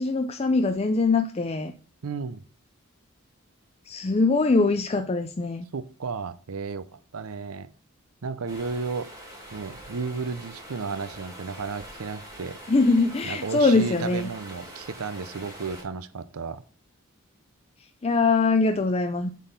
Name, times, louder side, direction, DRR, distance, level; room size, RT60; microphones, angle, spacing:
voice 1, 0.0-1.7 3.9-5.6 12.7-14.3 18.0-19.3, left 3 dB, 30° left, 0.4 m, -22 dB
voice 2, 2.0-2.4 5.7-7.7 8.2-9.1 9.5-12.6 13.2-16.6, right 4 dB, 85° right, 0.6 m, -33 dB
Stream, 8.5-15.8, right 1 dB, 15° right, 2.2 m, -44 dB
8.3 x 4.0 x 5.1 m
head